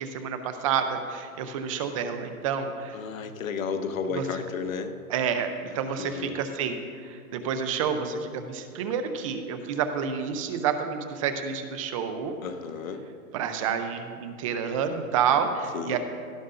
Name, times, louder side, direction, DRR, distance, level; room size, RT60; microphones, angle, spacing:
voice 1, 0.0-3.0 4.1-4.4 5.1-12.4 13.3-16.0, right 7 dB, 25° right, 8 dB, 0.6 m, -29 dB
voice 2, 2.9-4.9 6.0-6.4 12.4-13.0 15.7-16.0, left 5 dB, 65° left, 7 dB, 1.2 m, -32 dB
17.0 x 12.0 x 2.6 m, 2.2 s
hypercardioid pair, 150°, 44 cm